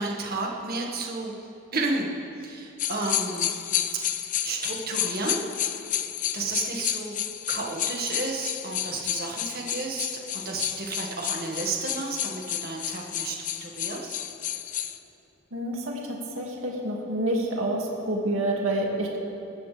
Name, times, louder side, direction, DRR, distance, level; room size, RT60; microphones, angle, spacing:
voice 1, 0.0-1.3 1.7-2.1 2.4-3.5 4.4-5.4 6.3-7.2 7.5-10.1 10.3-14.2, right 3 dB, 45° right, -1 dB, 1.9 m, -32 dB
sound 1, 2.8-15.0, left 11 dB, 40° left, 0.5 m, -31 dB
voice 2, 15.5-19.2, right 1 dB, 75° right, -2 dB, 2.4 m, -28 dB
21.0 x 15.5 x 3.5 m, 2.7 s
head